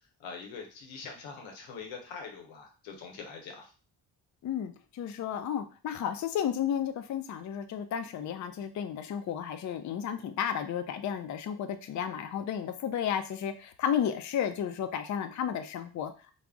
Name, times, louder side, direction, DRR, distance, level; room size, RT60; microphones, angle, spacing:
voice 1, 0.2-3.7, left 5 dB, 85° left, 2 dB, 0.7 m, -43 dB
voice 2, 4.4-16.3, left 9 dB, 45° left, 8 dB, 0.4 m, -33 dB
2.4 x 2.0 x 3.4 m, 0.36 s
supercardioid pair, 45°, 45 cm